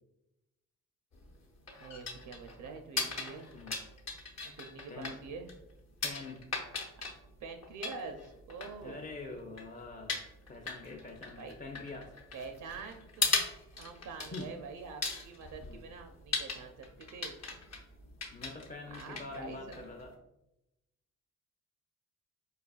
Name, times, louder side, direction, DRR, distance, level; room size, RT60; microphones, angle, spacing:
sound 1, 1.1-20.1, left 3 dB, 50° left, 0.9 m, -39 dB
voice 1, 1.8-3.5 4.4-5.5 7.4-9.0 11.4-11.5 12.3-13.3 13.8-17.4 18.9-19.8, right 4 dB, 65° right, 5 dB, 0.5 m, -45 dB
voice 2, 6.0-6.4 8.8-10.2 10.5-12.1 14.3-14.5 15.6-15.8 18.3-20.1, left 3 dB, 25° left, -1 dB, 0.5 m, -45 dB
4.6 x 2.3 x 2.3 m, 0.90 s
supercardioid pair, 50°, 34 cm